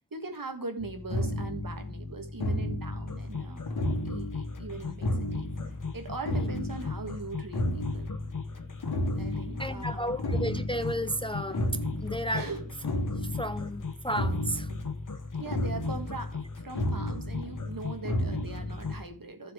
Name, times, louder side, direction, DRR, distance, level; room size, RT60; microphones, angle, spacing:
voice 1, 0.1-3.7 4.0-5.5 5.9-8.1 9.1-10.1 12.3-12.7 14.7-14.8 15.4-19.5, right 3 dB, 65° right, 1.6 m, -40 dB
sound 1, 0.8-19.0, left 1 dB, 80° left, 1.4 m, -33 dB
sound 2, 3.1-19.1, left 6 dB, 55° left, 1.1 m, -39 dB
voice 2, 9.6-12.5 13.2-14.7, equal, 15° left, 0.4 m, -33 dB
14.0 x 4.8 x 3.7 m
wide cardioid pair, 55°, 37 cm